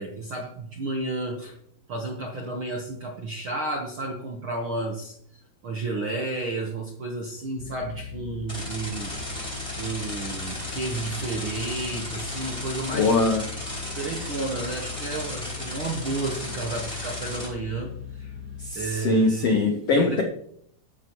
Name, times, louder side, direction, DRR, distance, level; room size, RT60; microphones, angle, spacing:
voice 1, 0.0-1.5 1.9-5.2 5.6-9.1 9.7-13.2 13.8-18.3 18.7-20.2, right 2 dB, 60° right, 1 dB, 1.3 m, -32 dB
sound 1, 7.6-18.7, left 7 dB, 90° right, 4.2 m, -39 dB
sound 2, 8.5-17.5, left 1 dB, 10° left, 4.3 m, -35 dB
voice 2, 12.9-13.5 18.6-20.2, left 3 dB, 70° left, 3 dB, 1.4 m, -22 dB
14.5 x 11.5 x 3.1 m, 0.68 s
omnidirectional pair, 4.2 m